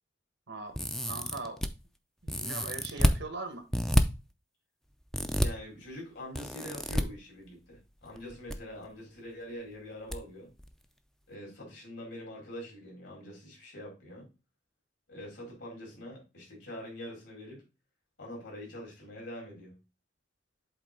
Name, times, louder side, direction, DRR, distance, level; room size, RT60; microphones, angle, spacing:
voice 1, 0.5-1.6 2.2-3.7, right 3 dB, 90° right, 1.5 m, -40 dB
sound 1, 0.7-1.7 2.3-3.2 3.7-4.0 5.1-5.5 6.3-7.0 8.2-8.6 8.8-8.9 10.1-10.2 10.6-10.7, equal, ahead, 0.4 m, -28 dB
voice 2, 5.4-10.5 11.3-14.3 15.1-17.6 18.2-19.7, left 1 dB, 75° left, 4.4 m, -44 dB
7.9 x 3.8 x 3.7 m
head